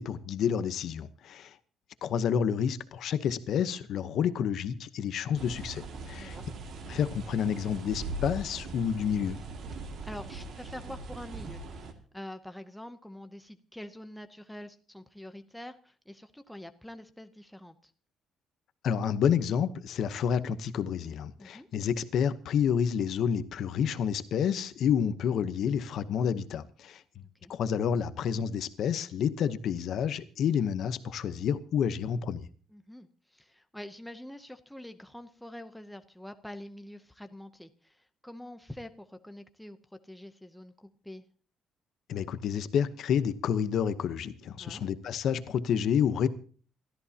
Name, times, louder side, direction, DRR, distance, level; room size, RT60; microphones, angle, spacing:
voice 1, 0.0-1.6 2.0-6.4 6.9-9.4 18.8-27.0 27.5-32.5 42.1-46.3, left 8 dB, 50° left, 1.0 m, -29 dB
sound 1, 5.4-11.9, right 2 dB, 45° right, 2.2 m, -40 dB
voice 2, 6.1-6.5 10.0-17.9 21.4-21.7 27.4-27.5 32.7-41.2 44.6-44.9, left 1 dB, ahead, 0.7 m, -46 dB
29.0 x 13.5 x 2.9 m
cardioid pair, 180°, 0 cm